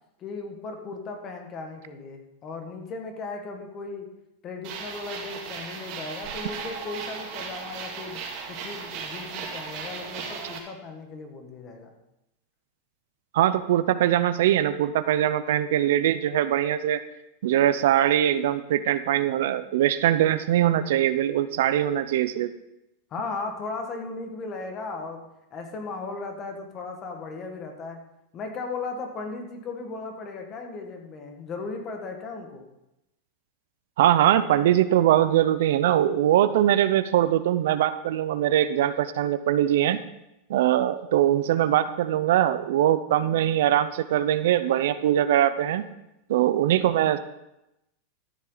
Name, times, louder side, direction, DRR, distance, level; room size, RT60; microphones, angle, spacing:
voice 1, 0.2-4.1 4.4-11.9 23.1-25.2 25.5-28.0 28.3-32.7, left 3 dB, 30° left, 4 dB, 1.6 m, -36 dB
sound 1, 4.6-10.6, right 5 dB, 45° right, 2.3 m, -36 dB
voice 2, 13.3-17.0 17.4-22.5 34.0-40.0 40.5-45.8 46.3-47.2, right 12 dB, 75° right, 13 dB, 0.6 m, -22 dB
13.0 x 7.5 x 3.9 m, 0.88 s
supercardioid pair, 150°, 0 cm